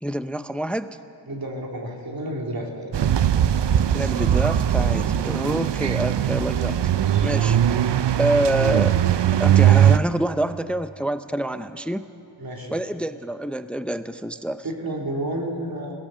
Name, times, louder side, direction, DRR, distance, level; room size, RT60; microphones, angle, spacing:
voice 1, 0.0-1.0 3.9-6.8 7.2-7.8 8.2-9.0 9.4-12.1 12.7-14.6, right 1 dB, 5° left, 11 dB, 0.6 m, -26 dB
voice 2, 1.3-2.9 12.4-12.8 14.6-15.9, right 1 dB, 50° right, 0 dB, 3.5 m, -31 dB
sound 1, 2.9-10.0, right 10 dB, 65° right, 0.7 m, -20 dB
22.5 x 17.5 x 6.8 m, 2.8 s
wide cardioid pair, 75°, 45 cm